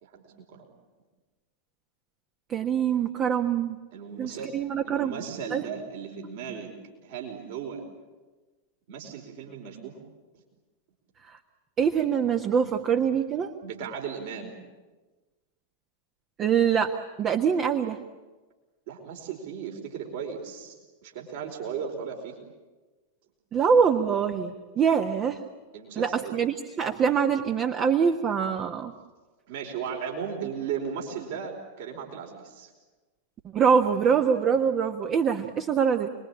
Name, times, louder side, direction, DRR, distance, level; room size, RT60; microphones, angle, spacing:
voice 1, 0.0-0.7 3.9-4.5 4.8-6.7 7.0-7.8 8.9-9.9 13.6-14.5 18.9-20.7 21.0-22.4 25.7-26.3 29.5-32.7, right 7 dB, 50° right, 2 dB, 4.7 m, -36 dB
voice 2, 2.5-3.8 4.2-5.1 5.5-5.6 11.3-11.4 11.8-13.5 16.4-18.0 23.5-25.4 25.9-28.9 33.5-36.1, right 7 dB, 30° right, 5 dB, 1.5 m, -24 dB
29.0 x 22.0 x 8.7 m, 1.3 s
figure-of-eight pair, 90°, 0 cm